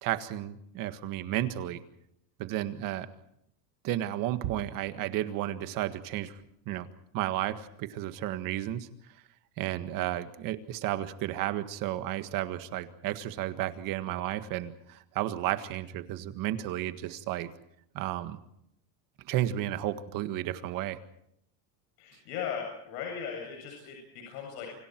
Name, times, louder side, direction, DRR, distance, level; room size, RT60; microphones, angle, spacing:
voice 1, 0.0-1.8 2.4-3.1 3.8-6.4 6.7-6.9 7.1-8.9 9.6-17.5 17.9-18.4 19.3-21.0, right 13 dB, 40° right, 10 dB, 1.7 m, -32 dB
voice 2, 22.0-24.7, left 7 dB, 75° left, 1 dB, 7.9 m, -38 dB
29.0 x 26.0 x 4.6 m, 0.75 s
supercardioid pair, 160°, 49 cm